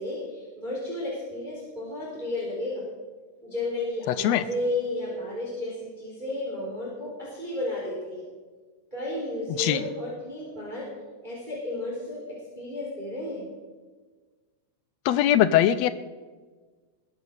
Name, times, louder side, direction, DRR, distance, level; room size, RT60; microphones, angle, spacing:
voice 1, 0.0-2.8 3.4-8.2 8.9-10.9 11.2-13.4, left 1 dB, 15° right, -5 dB, 3.7 m, -33 dB
voice 2, 4.1-4.4 9.6-9.8 15.0-15.9, left 11 dB, 80° left, 14 dB, 1.6 m, -21 dB
20.5 x 8.9 x 6.4 m, 1.4 s
omnidirectional pair, 3.4 m